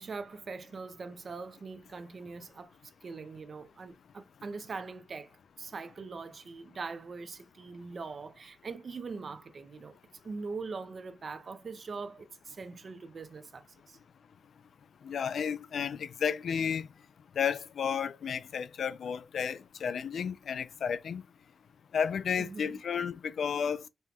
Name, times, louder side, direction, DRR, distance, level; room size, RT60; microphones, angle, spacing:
voice 1, 0.0-2.7 3.0-5.3 5.6-10.0 10.2-14.0 22.4-22.8, right 4 dB, 50° right, 0.6 m, -42 dB
voice 2, 15.0-16.9 17.4-21.2 21.9-23.8, left 7 dB, 75° left, 0.3 m, -32 dB
5.4 x 2.3 x 2.8 m
cardioid pair, 90°, 0 cm